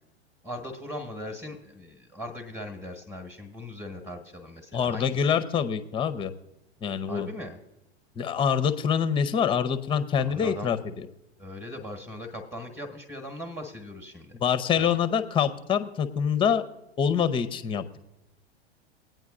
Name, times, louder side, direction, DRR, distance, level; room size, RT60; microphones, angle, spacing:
voice 1, 0.4-5.3 7.1-7.6 10.2-10.7 11.4-14.4 14.7-15.0, left 1 dB, ahead, 4 dB, 1.2 m, -39 dB
voice 2, 4.7-6.3 6.8-7.3 8.2-11.1 14.4-16.6 17.0-18.0, left 7 dB, 15° left, 13 dB, 0.6 m, -25 dB
22.0 x 9.1 x 2.4 m, 0.91 s
figure-of-eight pair, 95°, 33 cm